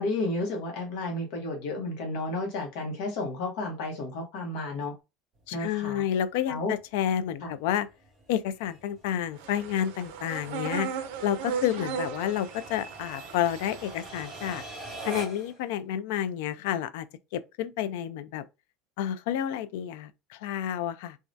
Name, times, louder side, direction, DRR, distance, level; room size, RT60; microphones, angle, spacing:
voice 1, 0.0-4.9 5.5-6.0 6.5-6.7 7.4-7.5, left 2 dB, 60° left, 0.9 m, -32 dB
sound 1, 5.4-15.6, right 2 dB, 10° right, 1.7 m, -46 dB
voice 2, 5.5-7.9 8.3-14.6 15.0-17.1 17.3-18.4 19.0-21.2, left 10 dB, 80° left, 0.3 m, -30 dB
sound 2, 9.4-14.6, right 6 dB, 80° right, 0.5 m, -37 dB
3.2 x 2.3 x 2.6 m
cardioid pair, 170°, 0 cm